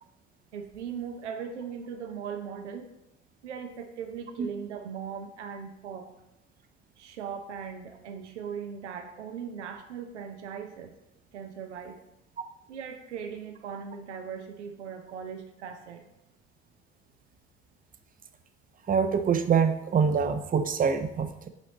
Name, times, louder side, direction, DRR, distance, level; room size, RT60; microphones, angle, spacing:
voice 1, 0.5-2.9 3.4-6.1 7.0-10.9 11.3-12.0 12.7-16.0, right 7 dB, 80° right, 6 dB, 0.7 m, -39 dB
voice 2, 18.9-21.5, right 6 dB, 25° right, 9 dB, 0.6 m, -25 dB
8.1 x 4.2 x 4.0 m, 0.87 s
figure-of-eight pair, 60°, 34 cm